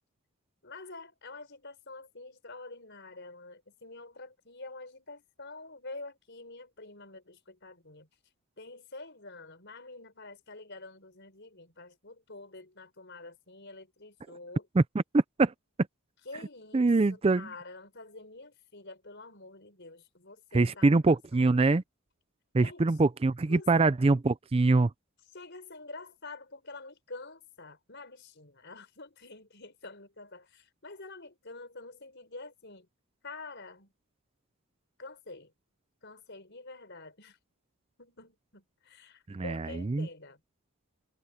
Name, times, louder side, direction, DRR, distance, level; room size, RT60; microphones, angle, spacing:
voice 1, 0.6-8.1 8.6-14.7 16.2-21.7 22.6-22.9 23.5-23.9 25.3-32.9 33.2-33.9 35.0-35.5 36.0-37.4 38.0-40.4, left 3 dB, 50° left, 5.3 m, -47 dB
voice 2, 14.8-15.5 16.7-17.5 20.5-21.8 22.5-24.9 39.3-40.1, right 3 dB, 25° right, 0.4 m, -24 dB
head